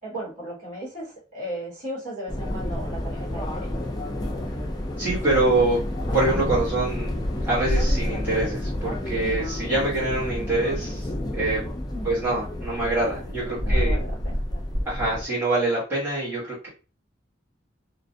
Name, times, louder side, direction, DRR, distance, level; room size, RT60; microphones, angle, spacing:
voice 1, 0.0-3.8 9.2-9.3 11.9-12.3 13.6-14.6, right 1 dB, 45° right, -6 dB, 1.3 m, -36 dB
sound 1, 2.3-15.3, left 1 dB, 20° left, 0.4 m, -28 dB
voice 2, 5.0-5.8 6.1-7.1 7.4-11.6 12.0-14.0 14.8-16.7, right 2 dB, 10° right, -10 dB, 1.1 m, -25 dB
2.4 x 2.0 x 2.6 m, 0.34 s
head